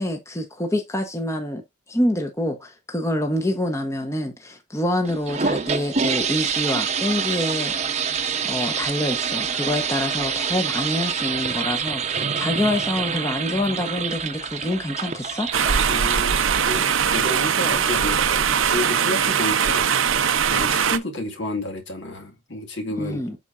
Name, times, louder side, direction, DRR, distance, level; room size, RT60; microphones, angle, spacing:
voice 1, 0.0-1.6 1.9-8.0 8.4-15.5 23.0-23.4, left 1 dB, 15° left, 1.0 m, -26 dB
sound 1, 5.0-17.6, right 6 dB, 35° right, 0.9 m, -27 dB
sound 2, 15.5-21.0, right 7 dB, 80° right, 0.8 m, -21 dB
voice 2, 15.9-23.2, left 1 dB, 65° left, 2.2 m, -31 dB
8.0 x 5.8 x 2.6 m
head